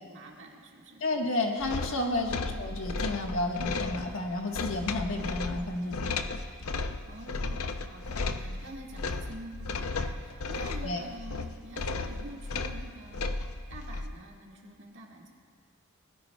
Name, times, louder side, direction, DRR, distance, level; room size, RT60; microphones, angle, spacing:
voice 1, 0.0-1.0 7.0-13.2 13.7-15.3, right 1 dB, 60° right, -1 dB, 1.7 m, -47 dB
voice 2, 1.0-6.1 10.8-11.0, left 2 dB, 65° left, 1 dB, 1.5 m, -31 dB
sound 1, 1.6-14.1, left 3 dB, 85° left, 0.6 m, -34 dB
20.0 x 15.0 x 2.3 m, 2.1 s
head